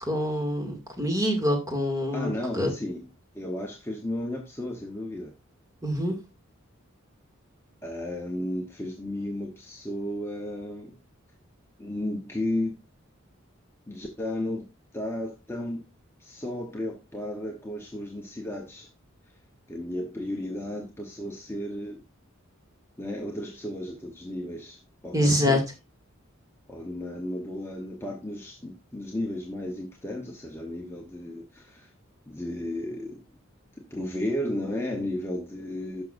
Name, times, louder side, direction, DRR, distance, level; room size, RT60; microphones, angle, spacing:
voice 1, 0.0-2.7 5.8-6.2 25.1-25.6, equal, 15° right, 2.2 m, -25 dB
voice 2, 2.1-3.1 3.3-5.3 7.8-11.0 11.8-12.8 13.9-14.7 14.9-15.8 16.2-18.9 19.7-22.0 23.0-25.6 26.7-31.9 32.3-33.2 33.8-36.0, left 1 dB, 10° left, 0.9 m, -34 dB
11.0 x 6.2 x 2.5 m
head